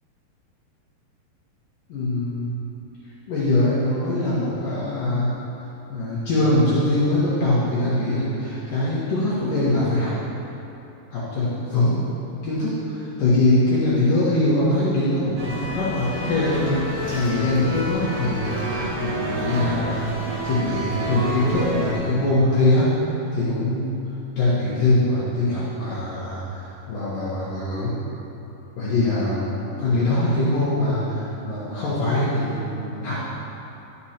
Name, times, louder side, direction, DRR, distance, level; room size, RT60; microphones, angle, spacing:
voice 1, 1.9-2.5 3.3-5.3 5.9-10.1 11.1-12.0 12.4-20.0 20.4-22.9 23.3-24.0 24.4-27.9 28.8-33.2, left 2 dB, 65° left, -10 dB, 2.7 m, -22 dB
sound 1, 15.4-21.9, equal, 65° right, 1.4 m, -29 dB
12.5 x 6.3 x 4.3 m, 2.9 s
omnidirectional pair, 4.7 m